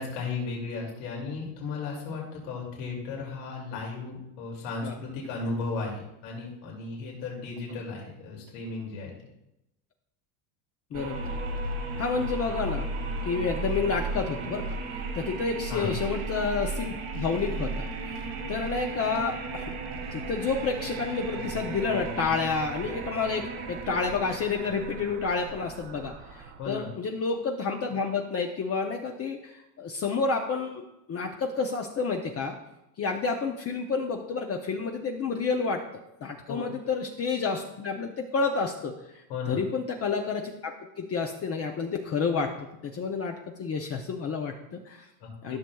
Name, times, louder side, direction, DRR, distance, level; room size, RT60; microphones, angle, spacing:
voice 1, 0.0-9.2 15.7-16.0 26.6-26.9 36.5-36.6 39.3-39.7 45.2-45.6, left 4 dB, 85° left, -2 dB, 2.6 m, -35 dB
voice 2, 10.9-11.4 12.0-12.9 13.2-14.7 15.1-17.9 18.5-19.7 20.1-32.5 33.0-35.8 36.2-38.9 39.5-40.7 41.0-42.5 42.8-45.1 45.4-45.6, left 4 dB, 30° left, 2 dB, 0.7 m, -30 dB
sound 1, 10.9-26.8, right 3 dB, 70° right, 2.1 m, -35 dB
13.5 x 6.2 x 2.3 m, 0.87 s
supercardioid pair, 120°, 50 cm